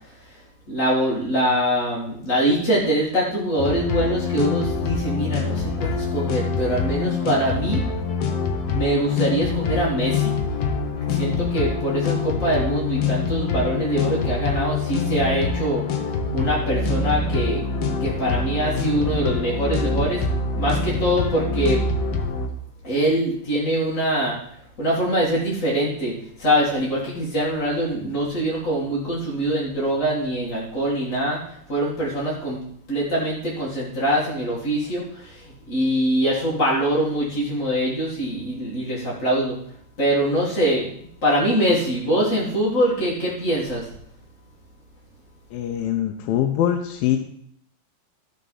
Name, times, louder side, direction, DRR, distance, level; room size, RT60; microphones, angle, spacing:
voice 1, 0.7-7.8 8.7-10.4 11.1-15.8 16.3-17.6 18.0-20.2 20.5-21.9 22.8-24.4 24.8-32.6 32.9-39.6 40.0-43.9, right 1 dB, 30° left, -6 dB, 1.6 m, -23 dB
sound 1, 3.6-22.5, left 4 dB, 70° left, 1.4 m, -25 dB
voice 2, 45.5-47.2, left 11 dB, 90° left, 5 dB, 2.5 m, -23 dB
13.0 x 5.2 x 5.5 m, 0.68 s
omnidirectional pair, 4.0 m